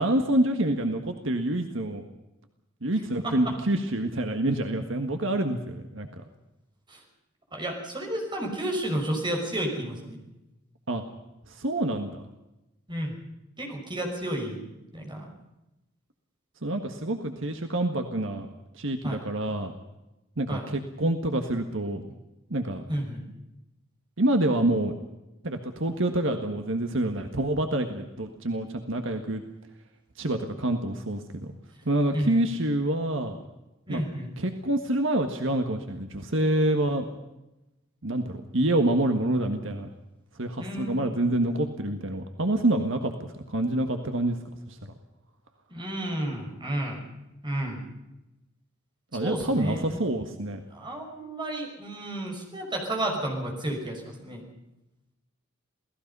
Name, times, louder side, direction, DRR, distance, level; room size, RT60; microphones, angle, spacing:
voice 1, 0.0-2.0 2.8-6.1 10.9-11.0 11.5-12.2 16.6-18.5 18.7-19.7 20.4-22.0 22.5-22.8 24.2-24.9 25.4-29.4 30.2-31.5 31.8-33.4 33.9-34.0 34.4-37.0 38.0-39.9 40.4-44.4 44.7-44.8 49.1-50.6, right 1 dB, 65° right, 6 dB, 1.7 m, -27 dB
voice 2, 3.2-3.5 6.9-7.0 7.5-10.2 12.9-13.2 13.6-14.6 14.9-15.3 19.0-19.2 20.5-20.7 22.9-23.2 32.1-32.4 33.9-34.3 40.6-41.5 45.7-47.0 47.4-47.8 49.1-50.3 50.7-54.4, right 1 dB, 20° right, 1 dB, 5.5 m, -32 dB
28.5 x 18.0 x 5.5 m, 0.96 s
head